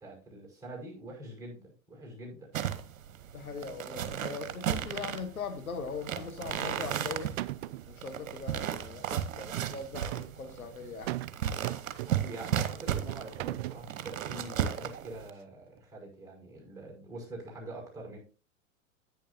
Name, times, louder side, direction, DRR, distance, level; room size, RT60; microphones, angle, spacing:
voice 1, 0.0-2.5 12.1-18.2, right 2 dB, 10° right, -1 dB, 5.6 m, -45 dB
sound 1, 2.5-15.3, right 10 dB, 70° right, 1.0 m, -35 dB
voice 2, 3.3-7.3 7.9-11.1, left 5 dB, 90° left, 8 dB, 1.3 m, -40 dB
sound 2, 6.7-7.1 7.4-7.9 9.4-10.3 11.1-11.4 11.6-12.4 13.1-13.8, right 16 dB, 50° right, 0.5 m, -37 dB
10.0 x 9.2 x 2.7 m, 0.35 s
hypercardioid pair, 100°, 42 cm